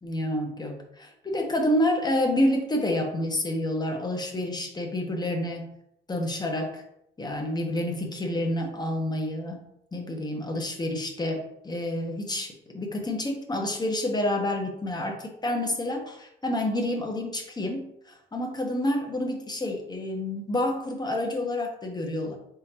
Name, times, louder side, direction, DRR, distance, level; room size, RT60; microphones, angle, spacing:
voice 1, 0.0-5.7 6.1-6.8 7.2-9.6 9.9-22.3, left 1 dB, 20° left, 3 dB, 0.9 m, -28 dB
3.9 x 3.8 x 2.9 m, 0.78 s
cardioid pair, 90°, 20 cm